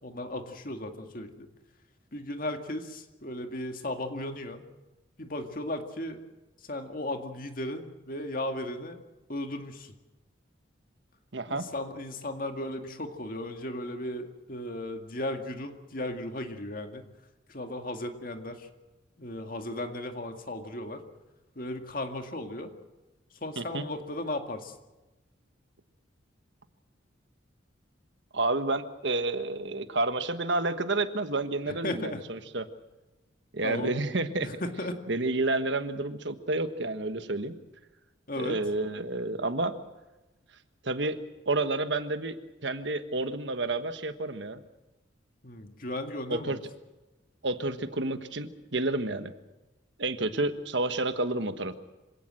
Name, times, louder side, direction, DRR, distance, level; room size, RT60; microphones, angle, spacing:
voice 1, 0.0-1.5 2.1-4.6 5.2-6.2 6.6-9.0 9.3-9.9 11.5-17.0 17.5-18.7 19.2-21.0 21.6-22.7 23.4-24.7 31.7-32.2 33.6-33.9 34.4-35.0 38.3-38.6 45.4-46.6, left 1 dB, 45° left, 5 dB, 2.1 m, -36 dB
voice 2, 11.3-11.7 23.6-23.8 28.3-32.7 33.5-34.5 35.1-37.5 38.4-39.7 40.8-41.2 41.4-44.6 46.3-46.6 47.4-49.3 50.0-51.7, right 2 dB, 65° right, 10 dB, 1.4 m, -30 dB
26.0 x 17.5 x 7.7 m, 1.1 s
head